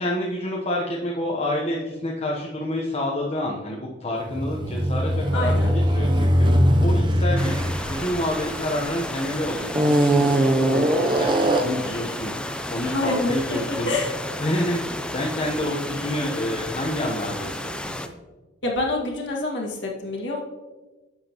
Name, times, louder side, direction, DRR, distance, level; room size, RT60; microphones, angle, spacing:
voice 1, 0.0-6.5 6.8-7.6 7.9-13.9 14.4-18.0, left 1 dB, 35° left, -3 dB, 1.0 m, -28 dB
sound 1, 4.3-9.1 9.7-11.9, equal, 25° right, 0.7 m, -21 dB
voice 2, 5.3-5.8 12.8-14.1 18.6-20.4, left 2 dB, 70° left, -2 dB, 2.0 m, -27 dB
sound 2, 7.4-18.1, left 1 dB, 5° left, 0.5 m, -32 dB
11.0 x 7.5 x 3.0 m, 1.2 s
head